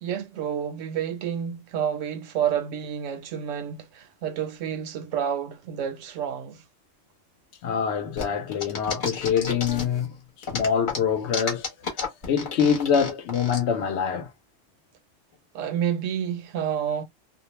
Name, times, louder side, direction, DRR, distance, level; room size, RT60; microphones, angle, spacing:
voice 1, 0.0-6.6 15.5-17.0, right 9 dB, 85° right, 1.0 m, -29 dB
voice 2, 7.6-11.7 12.2-14.3, left 7 dB, 70° left, 0.8 m, -25 dB
sound 1, 8.2-10.0 10.4-13.6, left 4 dB, 45° left, 0.9 m, -31 dB
2.4 x 2.0 x 2.9 m
omnidirectional pair, 1.3 m